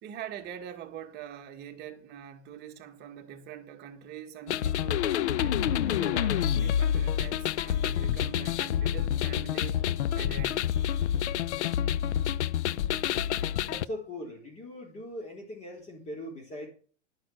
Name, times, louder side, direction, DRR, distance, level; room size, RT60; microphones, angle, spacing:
voice 1, 0.0-5.1 5.4-9.8 10.1-10.7, right 9 dB, 30° right, 2.1 m, -43 dB
sound 1, 4.5-13.8, left 10 dB, 70° left, 0.7 m, -28 dB
voice 2, 13.7-16.7, left 1 dB, 20° left, 3.9 m, -40 dB
12.0 x 9.5 x 6.4 m
hypercardioid pair, 140°, 36 cm